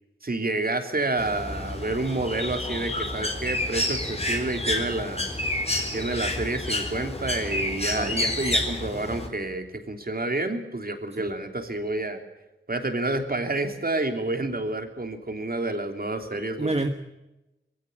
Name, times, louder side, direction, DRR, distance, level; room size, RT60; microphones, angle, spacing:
voice 1, 0.2-5.3 5.9-12.2 12.7-16.7, right 2 dB, 50° right, 6 dB, 3.2 m, -29 dB
Bird, 1.2-9.3, left 1 dB, 30° left, 3.9 m, -29 dB
voice 2, 16.3-16.9, right 2 dB, 30° right, 6 dB, 1.3 m, -29 dB
21.5 x 16.5 x 9.9 m, 0.97 s
wide cardioid pair, 65°, 20 cm